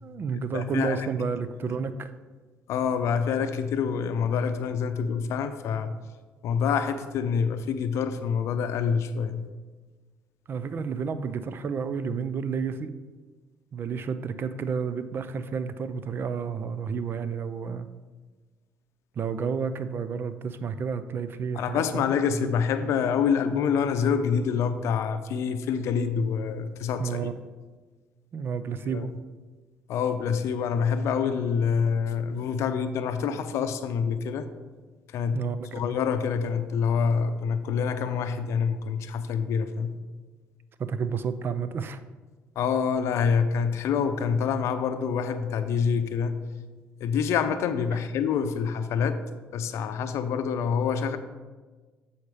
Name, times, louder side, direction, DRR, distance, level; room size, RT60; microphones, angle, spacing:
voice 1, 0.0-2.1 10.5-12.9 13.7-17.9 19.2-22.0 22.3-22.5 27.0-27.3 28.3-29.1 35.3-35.8 40.8-42.0, right 6 dB, 50° right, 12 dB, 0.5 m, -31 dB
voice 2, 0.5-1.1 1.6-1.7 2.7-6.0 6.4-9.5 21.5-27.3 28.9-29.1 29.9-34.5 35.1-35.4 35.7-40.0 42.6-46.3 47.0-49.2 49.5-51.2, left 6 dB, 70° left, 10 dB, 0.6 m, -26 dB
8.1 x 4.3 x 4.9 m, 1.3 s
supercardioid pair, 75°, 5 cm